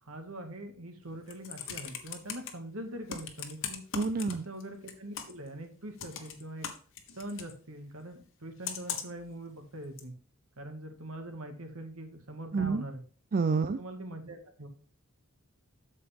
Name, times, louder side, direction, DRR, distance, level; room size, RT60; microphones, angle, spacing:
voice 1, 0.0-3.8 4.3-6.7 7.2-10.1 10.6-13.0 13.7-14.7, right 1 dB, 70° right, 6 dB, 1.9 m, -43 dB
Computer keyboard, 1.1-2.5 3.1-4.6 4.9-5.5 6.0-7.5 8.6-9.2 10.0-10.1, left 7 dB, 60° left, 1.3 m, -39 dB
voice 2, 3.9-4.5 12.5-12.8 13.3-13.8, right 4 dB, 40° right, 10 dB, 0.4 m, -28 dB
8.3 x 7.0 x 3.5 m, 0.42 s
head